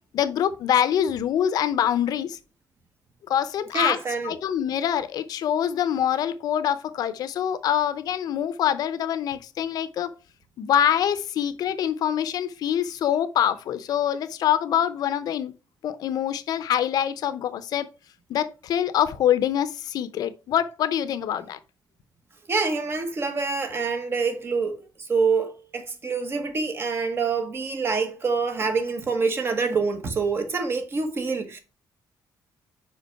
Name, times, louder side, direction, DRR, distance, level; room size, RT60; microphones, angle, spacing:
voice 1, 0.1-2.4 3.3-4.0 4.2-10.1 10.6-15.6 15.8-17.9 18.3-21.6, left 10 dB, 60° left, 0.6 m, -25 dB
voice 2, 3.7-4.4 22.5-31.6, right 4 dB, 35° right, 1.2 m, -26 dB
5.2 x 5.2 x 4.5 m
cardioid pair, 140°, 7 cm